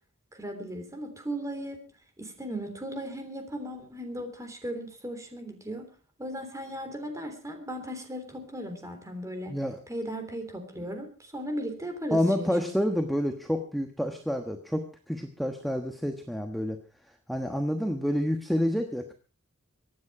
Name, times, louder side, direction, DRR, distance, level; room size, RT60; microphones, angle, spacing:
voice 1, 0.3-1.8 2.2-5.9 6.2-9.6 9.9-12.5, equal, 15° right, 5 dB, 3.4 m, -37 dB
voice 2, 9.5-9.8 12.1-16.8 17.3-19.1, equal, ahead, 4 dB, 1.2 m, -28 dB
24.0 x 9.6 x 4.8 m, 0.38 s
head